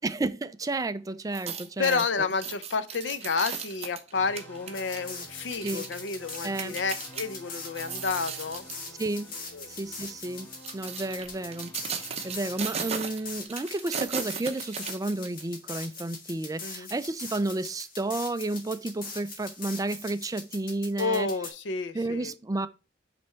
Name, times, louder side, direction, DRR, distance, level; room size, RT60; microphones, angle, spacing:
voice 1, 0.0-2.0 5.6-5.8 6.4-6.7 9.0-9.3 9.7-10.5 10.7-21.3 21.9-22.7, right 2 dB, 20° right, 0.4 m, -32 dB
sound 1, 1.2-7.2 7.7-8.8 9.3-9.5 10.3-15.4 15.8-15.9, right 6 dB, 35° right, 0.8 m, -37 dB
voice 2, 1.8-8.6 9.5-9.7 16.6-16.9 21.0-22.3, left 4 dB, 80° left, 0.6 m, -30 dB
sound 2, 4.1-13.4, right 1 dB, 10° left, 2.1 m, -50 dB
sound 3, 4.7-21.5, left 4 dB, 55° left, 1.6 m, -42 dB
7.9 x 3.4 x 4.3 m
head